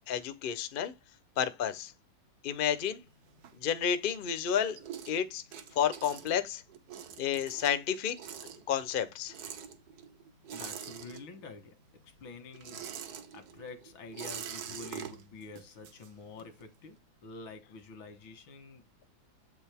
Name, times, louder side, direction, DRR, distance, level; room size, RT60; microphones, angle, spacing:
voice 1, 0.1-0.9 1.4-1.9 2.4-3.0 3.6-4.8 5.1-5.4 5.8-6.6 7.2-8.2 8.7-9.3, left 8 dB, 60° left, 0.5 m, -30 dB
sound 1, 2.5-4.1 4.4-11.7 11.9-16.6, right 8 dB, 60° right, 1.3 m, -45 dB
voice 2, 10.5-11.8 12.0-18.8, left 3 dB, 90° left, 2.2 m, -48 dB
8.1 x 5.2 x 3.5 m
omnidirectional pair, 2.1 m